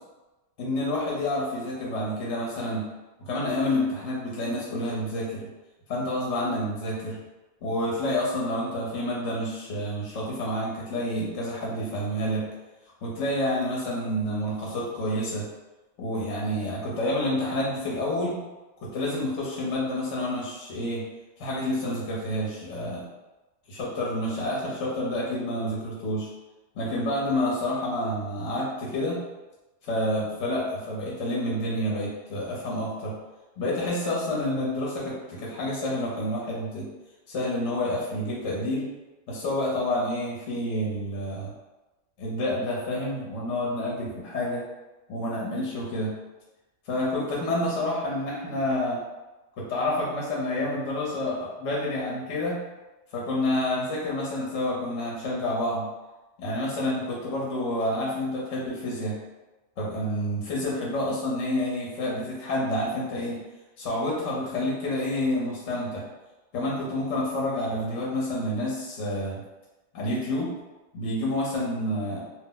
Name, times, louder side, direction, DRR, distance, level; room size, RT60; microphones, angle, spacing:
voice 1, 0.6-2.9 3.2-5.5 5.9-7.2 7.6-12.4 13.0-15.4 16.0-18.4 18.8-21.0 21.4-23.1 23.7-26.3 26.7-29.2 29.8-33.1 33.6-36.9 37.3-38.9 39.3-41.5 42.2-44.6 45.1-46.1 46.9-49.0 49.6-52.6 53.1-55.9 56.4-59.2 59.8-63.4 63.8-66.0 66.5-69.4 69.9-70.5 70.9-72.2, left 1 dB, 65° left, -4 dB, 1.0 m, -28 dB
2.5 x 2.0 x 3.7 m, 1.1 s
omnidirectional pair, 1.4 m